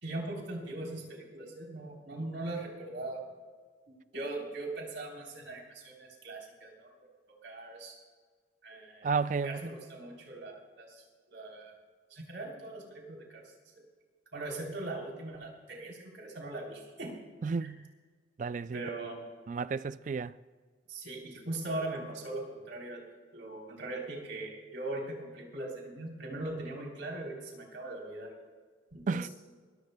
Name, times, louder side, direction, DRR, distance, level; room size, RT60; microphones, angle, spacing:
voice 1, 0.0-3.2 4.1-6.9 7.4-8.0 8.6-9.1 9.4-11.7 12.1-13.8 14.3-17.2 17.6-17.7 18.7-19.2 20.9-23.0 23.3-28.3 28.9-29.3, right 2 dB, 85° right, 3.5 m, -40 dB
voice 2, 9.0-9.6 17.4-17.9 18.4-18.8 19.5-20.3 29.1-29.3, right 5 dB, 45° right, 0.3 m, -32 dB
24.5 x 14.5 x 2.2 m
head